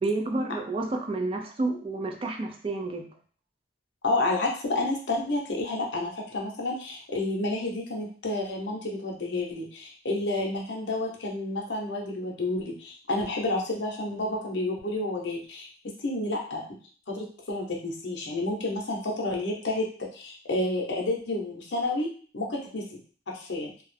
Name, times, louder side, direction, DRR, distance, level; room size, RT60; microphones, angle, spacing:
voice 1, 0.0-3.1, right 2 dB, 30° right, 4 dB, 0.3 m, -30 dB
voice 2, 4.0-15.7 16.0-16.6 17.1-19.9 20.1-22.1 22.3-23.0 23.3-23.7, left 2 dB, 65° left, -1 dB, 0.6 m, -30 dB
2.3 x 2.0 x 3.2 m, 0.43 s
head